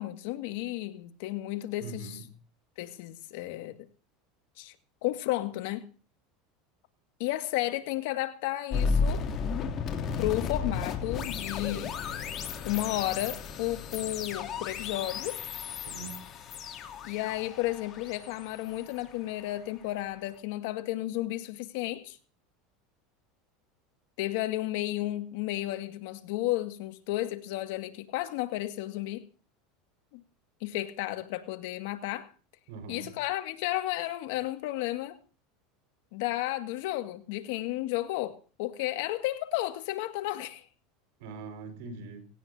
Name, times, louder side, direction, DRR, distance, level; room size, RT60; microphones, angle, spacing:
voice 1, 0.0-2.2 2.8-3.8 4.6-4.7 5.0-5.9 7.2-9.3 10.2-12.0 12.6-15.4 17.0-22.2 24.2-29.2 30.1-30.2 30.6-32.3 32.9-35.2 36.1-40.6, left 16 dB, 75° left, 2.0 m, -33 dB
voice 2, 1.8-2.3 15.8-16.2 32.7-33.1 41.2-42.3, right 4 dB, 75° right, 5.1 m, -42 dB
sound 1, 8.7-19.7, left 5 dB, 40° left, 2.9 m, -34 dB
19.0 x 17.5 x 2.8 m
supercardioid pair, 125°, 0 cm